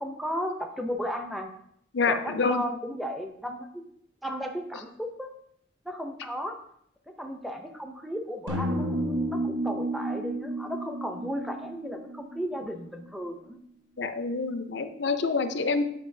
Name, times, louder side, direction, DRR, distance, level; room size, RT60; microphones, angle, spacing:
voice 1, 0.0-1.5 2.1-3.8 4.2-5.3 5.8-6.6 7.2-13.6, equal, ahead, 3 dB, 0.5 m, -35 dB
voice 2, 1.9-2.6 14.0-15.8, left 4 dB, 70° left, 9 dB, 0.5 m, -27 dB
sound 1, 8.5-12.6, right 1 dB, 85° right, 1.1 m, -31 dB
8.4 x 5.2 x 2.7 m, 0.71 s
head